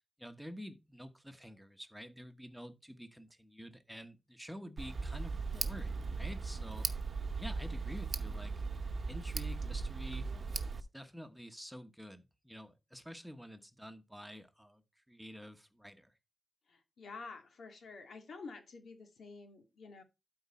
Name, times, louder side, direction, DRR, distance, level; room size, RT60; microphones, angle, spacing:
voice 1, 0.2-6.9 7.4-8.5 9.1-10.3 10.7-14.8 15.1-16.1, equal, ahead, 1.1 m, -49 dB
Tick, 4.8-10.8, right 4 dB, 50° right, 0.9 m, -38 dB
voice 2, 16.7-20.0, left 4 dB, 85° left, 2.1 m, -49 dB
12.5 x 4.7 x 4.3 m
wide cardioid pair, 120°, 0 cm